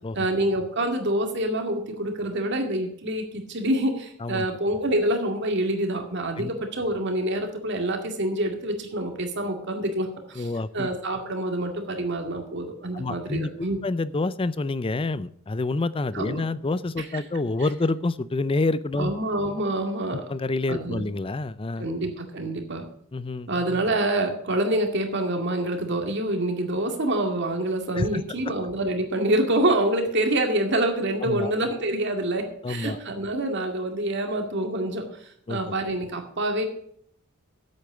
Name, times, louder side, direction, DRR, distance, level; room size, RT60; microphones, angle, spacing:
voice 1, 0.1-10.5 10.7-13.8 16.1-16.4 17.0-17.2 19.0-20.3 20.7-21.1 21.8-22.8 23.5-36.6, right 1 dB, 55° right, 4 dB, 2.2 m, -26 dB
voice 2, 10.4-10.9 12.9-13.5 13.8-19.1 20.1-21.9 23.1-23.5 28.0-28.2 31.2-31.5 32.6-33.0 35.5-35.6, left 2 dB, 25° left, 17 dB, 0.4 m, -27 dB
8.5 x 8.2 x 7.9 m, 0.64 s
head